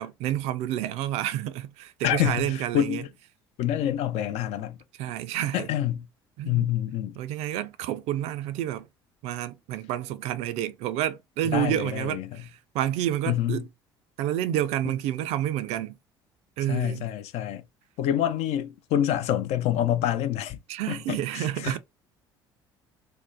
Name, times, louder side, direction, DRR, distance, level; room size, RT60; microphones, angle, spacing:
voice 1, 0.0-3.0 5.0-5.7 6.4-6.7 7.2-8.9 9.2-13.7 14.2-16.0 16.6-17.0 20.7-21.8, right 12 dB, 60° right, 0.4 m, -29 dB
voice 2, 2.0-3.1 3.6-4.8 5.5-6.1 6.4-7.2 11.4-12.3 13.3-13.6 16.7-17.6 18.0-20.6 20.9-21.8, left 11 dB, 60° left, 0.4 m, -27 dB
2.6 x 2.1 x 3.6 m
hypercardioid pair, 60°, 12 cm